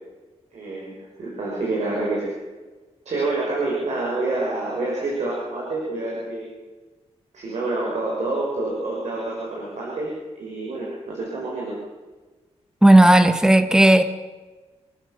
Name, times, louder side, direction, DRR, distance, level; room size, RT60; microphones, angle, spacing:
voice 1, 0.5-2.3 3.0-6.5 7.3-10.1 10.4-11.7, right 2 dB, 90° right, -4 dB, 6.2 m, -27 dB
voice 2, 12.8-14.0, right 1 dB, 5° right, 9 dB, 1.4 m, -13 dB
27.5 x 14.5 x 6.9 m, 1.3 s
wide cardioid pair, 150°, 11 cm